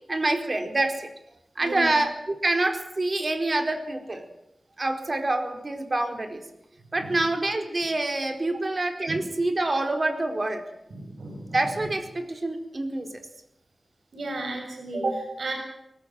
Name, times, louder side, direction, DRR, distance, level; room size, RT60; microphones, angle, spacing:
voice 1, 0.1-1.1 1.6-2.1 2.4-4.2 4.8-6.4 6.9-10.6 11.5-13.1, right 2 dB, 35° right, 6 dB, 4.3 m, -26 dB
voice 2, 1.6-1.9 7.0-7.2 9.1-9.2 10.9-11.9 14.1-15.5, right 2 dB, 85° right, 2 dB, 7.5 m, -33 dB
24.0 x 18.5 x 7.6 m, 0.81 s
wide cardioid pair, 105°, 0 cm